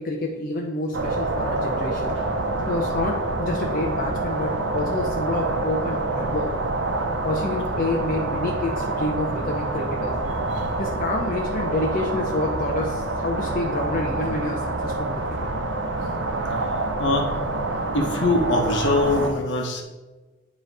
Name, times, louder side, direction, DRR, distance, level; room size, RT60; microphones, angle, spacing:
voice 1, 0.0-2.2 2.6-6.5 7.2-10.1 10.8-15.5, left 2 dB, 50° left, -1 dB, 0.7 m, -28 dB
sound 1, 0.9-19.3, right 2 dB, 75° right, 0.8 m, -27 dB
voice 2, 17.0-17.3 17.9-19.8, left 2 dB, 70° left, 3 dB, 1.1 m, -22 dB
9.2 x 3.1 x 4.7 m, 1.2 s
head